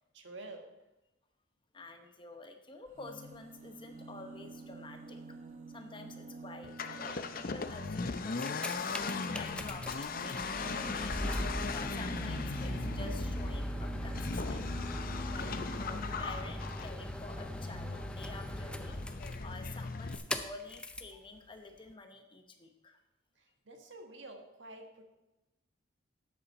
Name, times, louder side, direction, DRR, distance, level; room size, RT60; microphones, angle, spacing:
voice 1, 0.1-0.7 23.3-25.0, right 2 dB, 65° right, 4 dB, 1.5 m, -49 dB
voice 2, 1.7-5.4 5.7-11.2 11.7-14.9 15.3-19.0 19.4-23.0, left 3 dB, 25° left, 6 dB, 0.9 m, -49 dB
sound 1, 2.9-7.7 9.4-14.9 15.8-15.9 16.1-16.2, right 3 dB, 40° right, 0.8 m, -48 dB
Accelerating revving vroom, 6.6-20.2, left 4 dB, 45° left, 0.6 m, -39 dB
sound 2, 8.2-21.2 21.9-22.0, equal, 5° left, 0.5 m, -40 dB
12.5 x 8.4 x 4.2 m, 0.98 s
head